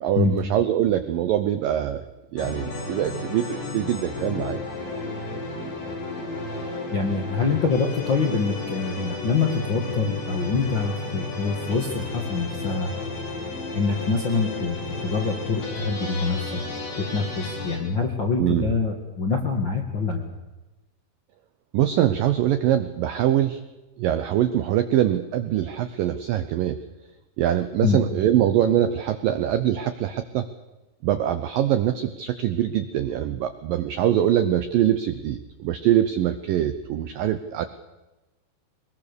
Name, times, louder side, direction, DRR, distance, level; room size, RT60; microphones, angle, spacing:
voice 1, 0.0-2.1 2.3-4.6 18.4-18.7 21.7-23.6 24.0-26.8 27.4-30.5 31.0-37.7, right 11 dB, 85° right, 10 dB, 2.0 m, -23 dB
sound 1, 2.4-17.8, left 2 dB, 75° left, 7.4 m, -33 dB
voice 2, 6.9-12.9 13.7-14.8 15.0-16.6 17.1-20.2 27.8-28.0, left 4 dB, 50° left, 0 dB, 1.3 m, -25 dB
22.0 x 21.0 x 6.8 m, 1.1 s
omnidirectional pair, 5.1 m